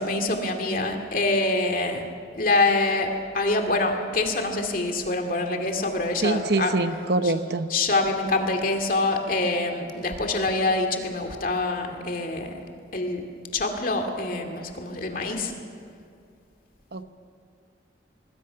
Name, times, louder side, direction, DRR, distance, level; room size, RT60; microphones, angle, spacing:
voice 1, 0.0-2.0 2.3-6.7 7.2-7.3 7.7-12.6 12.9-13.2 13.5-15.5, left 2 dB, 50° left, 4 dB, 2.4 m, -25 dB
voice 2, 6.2-7.7 16.9-17.1, right 2 dB, 60° right, 10 dB, 0.9 m, -25 dB
26.0 x 20.0 x 5.8 m, 2.3 s
head